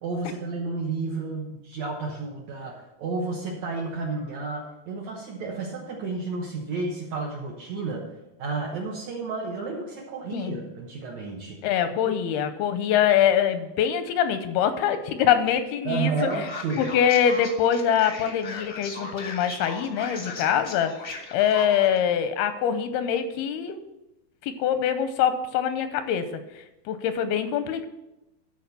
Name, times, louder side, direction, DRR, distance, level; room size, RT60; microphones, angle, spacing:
voice 1, 0.0-8.0 8.4-11.6 12.0-12.1 15.8-16.9, right 3 dB, 65° right, -1 dB, 1.8 m, -31 dB
voice 2, 11.6-16.1 16.8-20.9 21.3-23.8 24.4-26.3 26.9-27.9, left 9 dB, 85° left, 10 dB, 2.6 m, -24 dB
Male speech man speaking, 16.2-22.0, left 3 dB, 65° left, 0.9 m, -38 dB
12.0 x 4.6 x 6.8 m, 0.95 s
omnidirectional pair, 4.5 m